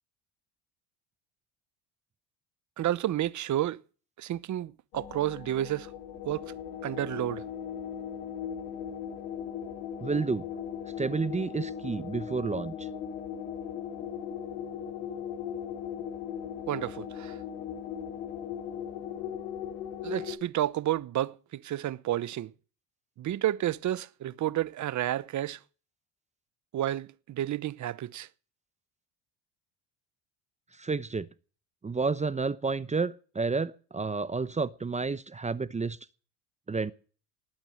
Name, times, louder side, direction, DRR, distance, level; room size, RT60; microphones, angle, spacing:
voice 1, 2.8-3.8 4.2-5.9 6.2-6.5 6.8-7.4 16.7-17.4 20.0-22.5 23.2-25.6 26.7-28.3, right 13 dB, 40° right, 0.9 m, -31 dB
sound 1, 4.9-20.4, left 8 dB, 85° left, 5.4 m, -38 dB
voice 2, 10.0-10.5 11.0-12.9 30.8-31.3 31.8-36.0 36.7-36.9, right 4 dB, 15° right, 0.8 m, -30 dB
19.5 x 8.9 x 6.5 m
cardioid pair, 110°, 43 cm